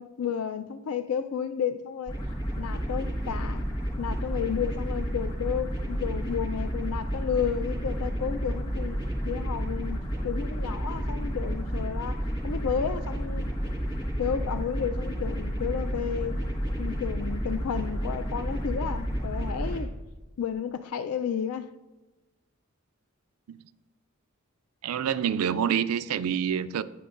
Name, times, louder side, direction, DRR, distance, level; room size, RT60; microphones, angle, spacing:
voice 1, 0.0-2.2 2.6-3.7 4.0-13.5 14.2-16.4 16.8-19.9 20.4-21.7, left 7 dB, 85° left, 0.4 m, -32 dB
sound 1, 2.1-19.8, equal, 20° left, 1.5 m, -31 dB
voice 2, 24.8-26.8, right 8 dB, 85° right, 0.4 m, -27 dB
16.5 x 6.1 x 2.5 m
head